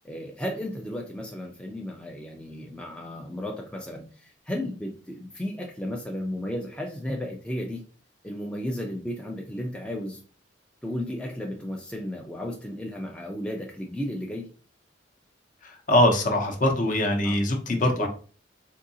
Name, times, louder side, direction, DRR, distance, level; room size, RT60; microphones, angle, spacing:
voice 1, 0.0-7.9 8.2-10.2 10.8-14.5 17.2-17.4 17.7-18.1, left 1 dB, 5° left, 0 dB, 0.4 m, -34 dB
voice 2, 15.6-18.1, left 1 dB, 45° left, 4 dB, 0.7 m, -23 dB
3.7 x 2.7 x 2.7 m, 0.38 s
head